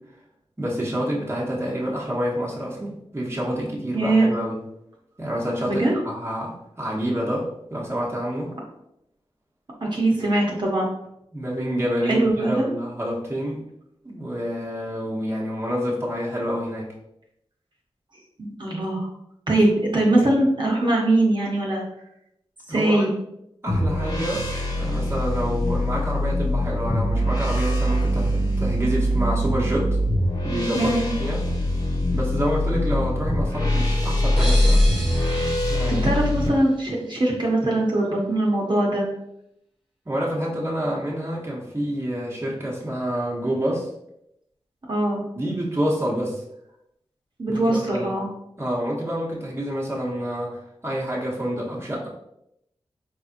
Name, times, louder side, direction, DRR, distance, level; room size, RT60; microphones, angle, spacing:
voice 1, 0.6-4.6 5.2-8.5 11.3-13.6 14.0-16.9 22.7-23.1 23.6-24.5 24.7-30.0 30.4-30.9 31.2-31.4 32.1-34.8 35.7-36.1 40.1-43.9 45.3-46.4 47.5-48.1 48.6-52.1, equal, 25° right, -4 dB, 1.1 m, -28 dB
voice 2, 3.9-4.3 5.7-5.9 9.8-10.9 12.1-12.7 18.4-19.1 19.5-21.8 22.7-23.1 30.7-31.1 35.9-39.1 44.9-45.2 47.4-48.3, right 1 dB, 45° right, -3 dB, 1.1 m, -21 dB
sound 1, 23.7-36.5, left 1 dB, 40° left, 1.3 m, -23 dB
sound 2, 34.4-37.1, right 1 dB, ahead, 1.5 m, -35 dB
4.2 x 3.4 x 2.6 m, 0.80 s
cardioid pair, 60°, 11 cm